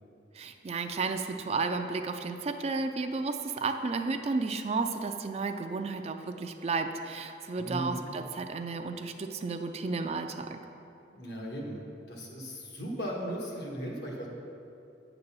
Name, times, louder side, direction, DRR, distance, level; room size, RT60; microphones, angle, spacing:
voice 1, 0.3-10.6, right 4 dB, 35° right, 6 dB, 0.4 m, -33 dB
voice 2, 7.6-8.0 11.1-11.8 12.1-14.3, equal, 70° left, -2 dB, 1.5 m, -37 dB
8.9 x 4.0 x 6.9 m, 2.7 s
head